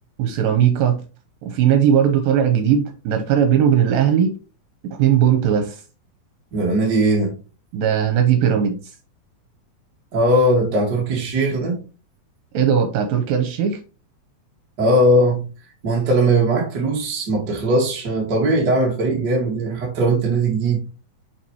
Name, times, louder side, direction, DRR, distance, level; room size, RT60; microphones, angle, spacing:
voice 1, 0.2-1.0 1.4-4.3 5.0-5.8 7.7-8.9 12.5-13.8, right 9 dB, 80° right, 2.5 m, -18 dB
voice 2, 6.5-7.4 10.1-11.8 14.8-15.4 15.8-20.8, right 1 dB, 40° right, 1.7 m, -19 dB
6.0 x 5.9 x 3.0 m
omnidirectional pair, 4.2 m